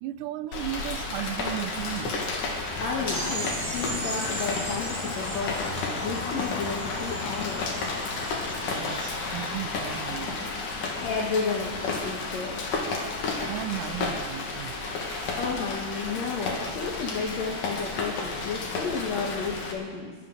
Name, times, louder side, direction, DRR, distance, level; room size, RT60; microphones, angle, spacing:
voice 1, 0.0-2.2 8.7-10.5 13.5-14.8, right 13 dB, 85° right, 15 dB, 2.1 m, -35 dB
Rain, 0.5-19.7, left 3 dB, 80° left, 3.3 m, -32 dB
voice 2, 2.8-7.8 11.0-12.6 15.4-20.1, left 5 dB, 65° left, -2 dB, 2.5 m, -32 dB
sound 1, 3.1-9.2, right 2 dB, 20° right, 1.9 m, -38 dB
22.5 x 13.5 x 3.9 m, 1.5 s
omnidirectional pair, 3.6 m